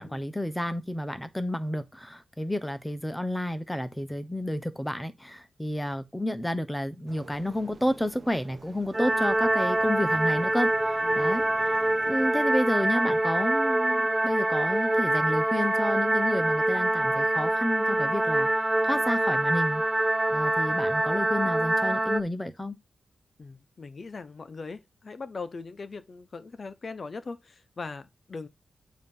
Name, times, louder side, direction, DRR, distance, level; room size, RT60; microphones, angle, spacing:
voice 1, 0.0-11.7 12.0-19.8 20.3-22.8, left 1 dB, 5° left, 1.0 m, -31 dB
sound 1, 7.1-12.3, right 3 dB, 50° right, 1.2 m, -49 dB
sound 2, 8.9-22.2, right 1 dB, 15° right, 0.4 m, -25 dB
voice 2, 11.0-11.4 23.4-28.5, left 4 dB, 45° left, 0.9 m, -40 dB
8.8 x 2.9 x 5.5 m
wide cardioid pair, 110°, 0 cm